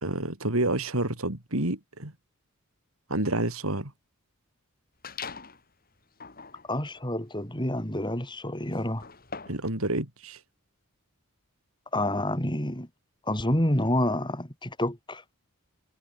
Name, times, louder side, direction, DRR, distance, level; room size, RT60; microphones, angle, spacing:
voice 1, 0.0-2.1 3.1-3.9 9.5-10.4, right 2 dB, 70° right, 3.8 m, -29 dB
sound 1, 5.0-5.6 6.1-9.7, left 5 dB, 40° left, 4.9 m, -43 dB
voice 2, 6.7-9.1 11.9-12.9 13.2-15.2, left 1 dB, 20° left, 5.0 m, -28 dB
head